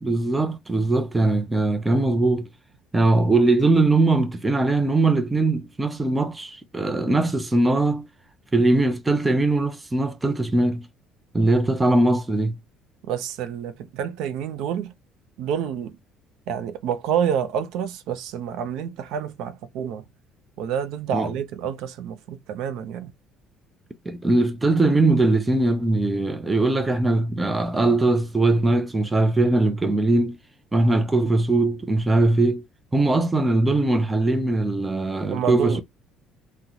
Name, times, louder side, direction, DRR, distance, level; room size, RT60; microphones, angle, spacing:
voice 1, 0.0-2.5 2.9-8.1 8.5-10.9 11.3-12.6 21.1-21.3 24.1-30.4 30.7-32.6 32.9-35.8, right 2 dB, 10° right, 0.4 m, -21 dB
voice 2, 13.0-14.9 15.4-15.9 16.5-20.0 20.6-23.1 35.3-35.8, right 8 dB, 70° right, 0.5 m, -28 dB
3.7 x 2.1 x 2.8 m
cardioid pair, 155°, 0 cm